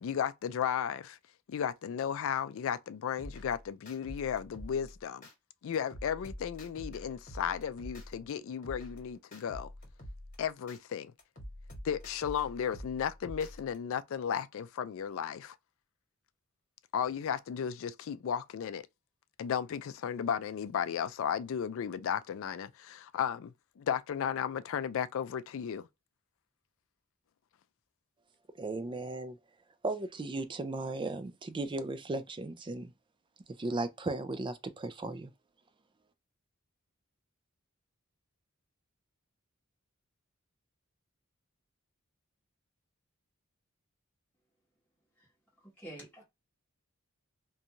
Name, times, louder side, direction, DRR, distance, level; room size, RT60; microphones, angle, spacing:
voice 1, 0.0-1.2 1.5-5.3 5.6-9.7 10.4-11.1 11.8-15.6 16.9-18.8 19.4-25.9, left 8 dB, 65° left, 0.3 m, -34 dB
sound 1, 3.2-5.3 5.7-8.3 8.6-10.8 11.2-13.8, equal, 40° left, 1.3 m, -47 dB
voice 2, 28.6-29.4 29.8-32.9 33.6-35.3, right 2 dB, 25° right, 0.4 m, -36 dB
voice 3, 45.8-46.2, right 1 dB, 5° left, 1.1 m, -47 dB
2.6 x 2.3 x 2.8 m
head